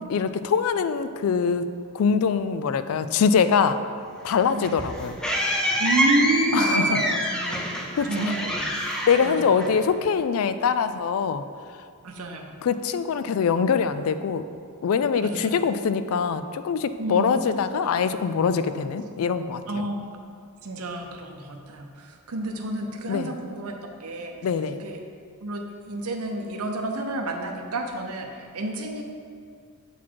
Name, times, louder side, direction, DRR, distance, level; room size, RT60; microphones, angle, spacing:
voice 1, 0.1-3.8 4.2-5.2 6.5-7.0 8.0-8.3 9.1-11.4 12.6-14.4 14.8-19.9 23.1-23.3 24.4-24.8, left 6 dB, 70° left, 12 dB, 0.3 m, -23 dB
sound 1, 4.2-10.1, equal, 5° left, 0.5 m, -26 dB
voice 2, 5.8-7.7 8.1-8.7 9.2-9.6 12.0-12.5 15.2-15.5 17.0-17.4 19.7-20.1 20.6-24.4 24.8-25.0 25.4-29.0, right 1 dB, 80° right, 3 dB, 0.7 m, -30 dB
7.4 x 4.1 x 4.6 m, 2.3 s
head